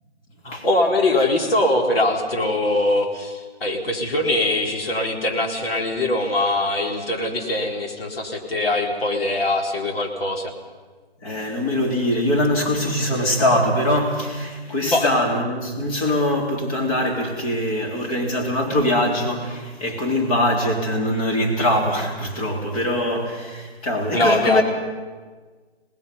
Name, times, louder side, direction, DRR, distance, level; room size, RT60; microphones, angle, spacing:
voice 1, 0.4-10.5 14.9-15.1 24.1-24.6, left 2 dB, 65° left, 2 dB, 3.8 m, -22 dB
voice 2, 11.2-24.6, left 1 dB, 35° left, 1 dB, 4.1 m, -22 dB
26.0 x 19.5 x 5.5 m, 1.4 s
hypercardioid pair, 155°, 32 cm